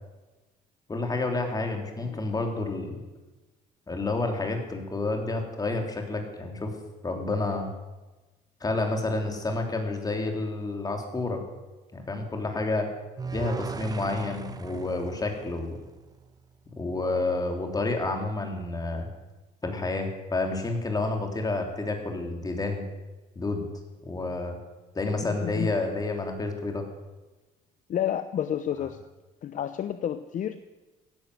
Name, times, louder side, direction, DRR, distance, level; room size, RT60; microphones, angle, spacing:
voice 1, 0.9-3.0 3.9-6.7 7.0-7.7 8.6-11.4 11.9-12.9 13.3-15.8 16.8-19.1 19.6-22.8 23.4-23.6 24.0-24.6 24.9-26.8, left 2 dB, 20° left, 3 dB, 3.5 m, -29 dB
sound 1, 13.2-16.4, right 5 dB, 20° right, 0.9 m, -38 dB
voice 2, 25.1-25.7 27.9-29.0 29.4-30.6, left 10 dB, 50° left, 11 dB, 0.8 m, -30 dB
16.5 x 11.0 x 8.0 m, 1.1 s
cardioid pair, 110°, 17 cm